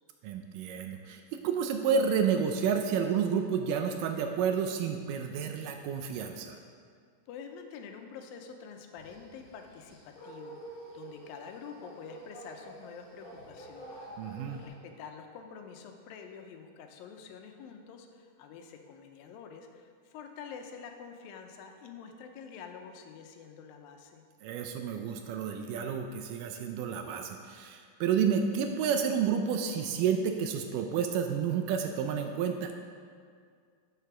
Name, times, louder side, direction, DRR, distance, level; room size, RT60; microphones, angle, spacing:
voice 1, 0.2-6.6 14.2-14.6 24.4-32.7, right 7 dB, 80° right, 5 dB, 2.0 m, -30 dB
voice 2, 7.3-10.6 10.9-14.1 14.6-24.2, left 6 dB, 85° left, 5 dB, 2.5 m, -47 dB
sound 1, 9.0-14.7, right 1 dB, 40° left, 2.6 m, -48 dB
6.8 x 6.7 x 5.9 m, 2.1 s
omnidirectional pair, 4.1 m